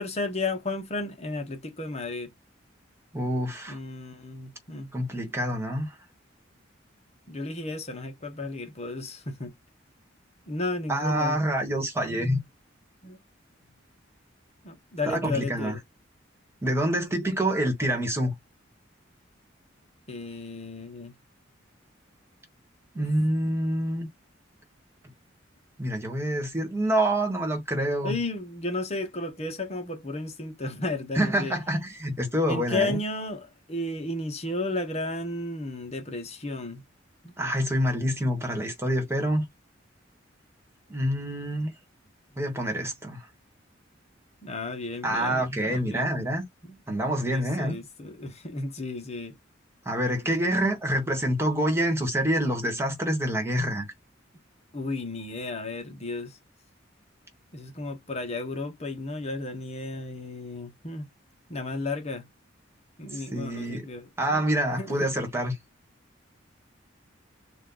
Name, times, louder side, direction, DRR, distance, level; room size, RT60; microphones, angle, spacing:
voice 1, 0.0-2.3 3.7-4.9 7.3-9.5 10.5-11.4 13.0-13.2 14.6-15.8 20.1-21.1 23.0-23.1 23.4-23.5 28.0-31.5 32.5-36.8 37.2-37.5 44.4-46.3 46.6-47.0 47.3-49.3 54.7-56.4 57.5-61.1 61.5-62.3 63.0-64.4 64.7-65.1, left 2 dB, 35° left, 1.1 m, -33 dB
voice 2, 3.1-3.8 4.9-6.0 10.9-12.4 15.1-15.8 16.6-18.3 22.9-24.1 25.8-28.1 31.1-33.0 37.4-39.4 40.9-41.7 42.3-43.2 45.0-46.4 46.9-47.8 49.8-53.9 63.1-63.9 64.2-65.6, right 1 dB, 15° right, 1.5 m, -27 dB
4.3 x 2.5 x 3.9 m
head